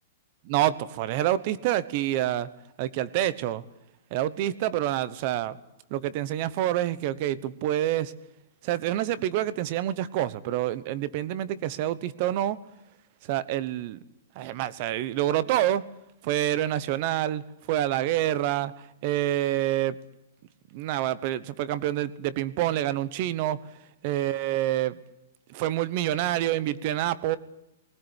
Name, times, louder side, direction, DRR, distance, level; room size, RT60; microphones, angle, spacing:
voice 1, 0.4-2.5 2.8-3.6 4.1-5.6 5.9-8.1 8.6-12.6 13.3-14.0 14.3-15.8 16.2-17.4 17.7-18.7 19.0-20.0 20.7-23.6 24.0-25.0 25.5-27.4, right 13 dB, 35° right, 18 dB, 1.1 m, -27 dB
20.0 x 18.5 x 9.8 m, 0.86 s
hypercardioid pair, 170°, 0 cm